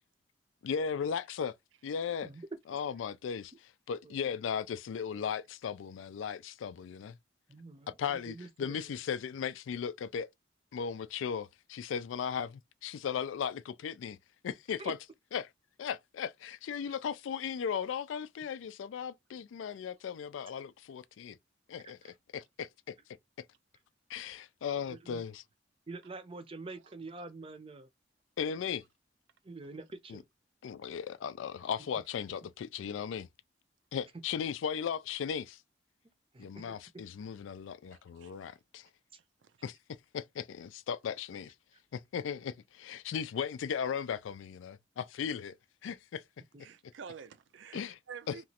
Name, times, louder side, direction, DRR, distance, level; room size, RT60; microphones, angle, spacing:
voice 1, 0.6-1.5 1.8-2.3 2.7-3.5 3.9-7.2 8.0-10.3 10.7-14.2 14.4-15.0 15.3-15.5 15.8-16.3 16.7-21.4 21.7-22.0 22.3-22.7 24.1-25.4 28.4-28.8 30.1-30.2 30.6-33.3 33.9-35.6 36.4-38.9 39.6-39.7 40.1-41.5 41.9-45.6 45.8-46.2 47.7-48.0 48.3-48.4, left 7 dB, 90° left, 0.3 m, -36 dB
voice 2, 4.0-4.4 7.5-7.9 8.2-8.9 14.8-14.9 21.8-22.1 24.9-25.2 25.9-27.9 29.4-30.2 36.3-36.8 41.7-41.8 46.5-46.6, right 3 dB, 30° right, 0.6 m, -46 dB
voice 3, 37.9-38.5 39.4-39.5 46.6-48.5, right 6 dB, 80° right, 0.5 m, -49 dB
2.9 x 2.4 x 2.8 m
head